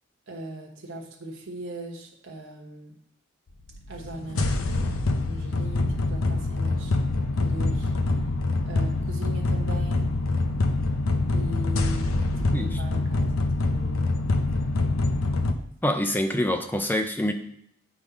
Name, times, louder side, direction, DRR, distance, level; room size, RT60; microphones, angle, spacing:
voice 1, 0.3-3.0 3.9-6.9 7.4-7.9 8.7-10.1 11.3-13.5 13.7-14.1, right 1 dB, 70° right, 0 dB, 1.2 m, -40 dB
sound 1, 3.7-15.5, left 2 dB, 85° left, 0.6 m, -25 dB
voice 2, 15.8-17.3, left 1 dB, 10° left, 6 dB, 0.5 m, -25 dB
8.1 x 3.6 x 5.1 m, 0.70 s
head